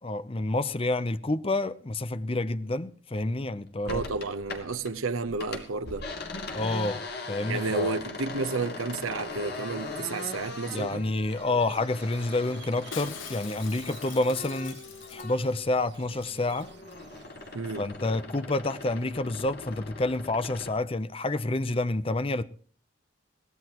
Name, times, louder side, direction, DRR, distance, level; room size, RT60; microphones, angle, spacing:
voice 1, 0.0-4.0 6.5-7.0 7.3-7.9 10.7-14.8 15.1-16.7 17.8-22.4, left 2 dB, 25° left, 0.6 m, -28 dB
voice 2, 3.8-6.1 7.5-11.1 11.5-11.6 17.5-17.9, right 3 dB, 85° right, 0.9 m, -31 dB
sound 1, 3.9-4.9 5.2-15.6 15.9-20.8, left 3 dB, 50° left, 2.4 m, -40 dB
Squeak, 9.8-18.6, right 5 dB, 55° right, 1.0 m, -52 dB
Shatter, 12.9-15.7 15.9-16.0 16.2-16.6 16.9-17.0, left 10 dB, 65° left, 0.7 m, -44 dB
22.5 x 17.5 x 3.0 m
head